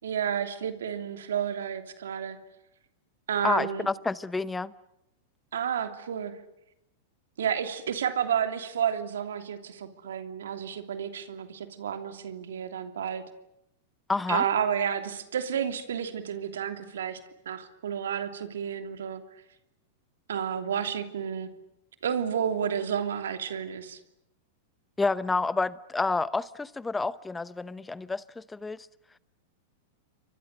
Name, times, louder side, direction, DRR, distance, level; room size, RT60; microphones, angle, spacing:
voice 1, 0.0-2.4 3.3-3.9 5.5-6.4 7.4-13.2 14.3-17.2 17.4-19.2 20.3-21.5 22.0-24.0, right 8 dB, 80° right, 3.0 m, -31 dB
voice 2, 3.4-4.7 14.1-14.4 25.0-28.8, left 3 dB, 10° left, 0.8 m, -29 dB
30.0 x 24.0 x 6.6 m
hypercardioid pair, 110°, 0 cm